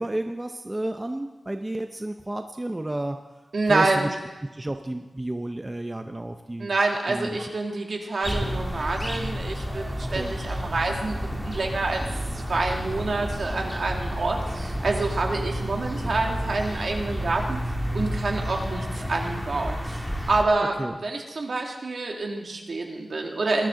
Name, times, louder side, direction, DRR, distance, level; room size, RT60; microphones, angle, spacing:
voice 1, 0.0-3.2 3.7-4.1 4.5-6.7 7.1-7.5 10.1-10.3 20.8-21.0, right 1 dB, 15° right, 6 dB, 0.7 m, -31 dB
voice 2, 3.5-4.1 6.6-12.0 12.5-17.6 17.9-20.0 20.3-23.7, right 3 dB, 60° right, 1 dB, 2.2 m, -27 dB
sound 1, 8.2-20.4, equal, ahead, 1.9 m, -30 dB
21.0 x 13.0 x 3.8 m, 1.1 s
wide cardioid pair, 120°, 0 cm